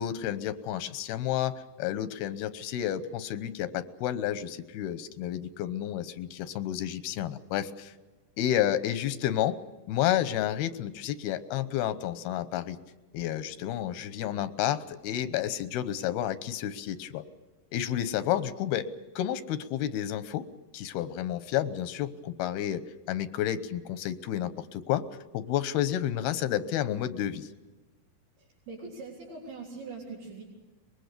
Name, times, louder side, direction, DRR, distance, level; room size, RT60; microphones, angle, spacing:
voice 1, 0.0-7.9 8.4-9.6 9.9-12.8 13.1-17.2 17.7-18.9 19.2-20.4 20.7-25.0 25.3-27.5, left 11 dB, 90° left, 13 dB, 2.9 m, -30 dB
voice 2, 28.4-30.4, right 4 dB, 85° right, -5 dB, 5.8 m, -42 dB
24.0 x 21.5 x 6.8 m, 1.2 s
omnidirectional pair, 4.3 m